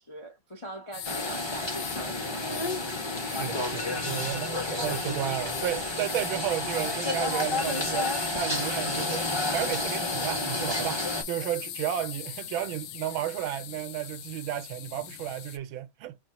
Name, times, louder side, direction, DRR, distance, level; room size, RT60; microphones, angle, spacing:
voice 1, 0.0-2.6 11.4-11.5, right 1 dB, 35° left, 0.4 m, -42 dB
sound 1, 0.9-15.6, left 11 dB, 75° left, 1.3 m, -40 dB
sound 2, 1.0-11.2, left 2 dB, 20° left, 0.9 m, -31 dB
voice 2, 3.3-11.0 11.3-16.2, right 12 dB, 80° right, 1.5 m, -33 dB
sound 3, 3.7-4.6 4.9-5.2 5.5-7.0 7.3-7.4 7.6-9.0 9.3-9.9 10.2-10.8, left 2 dB, 90° left, 1.7 m, -45 dB
6.3 x 2.1 x 2.8 m
omnidirectional pair, 2.2 m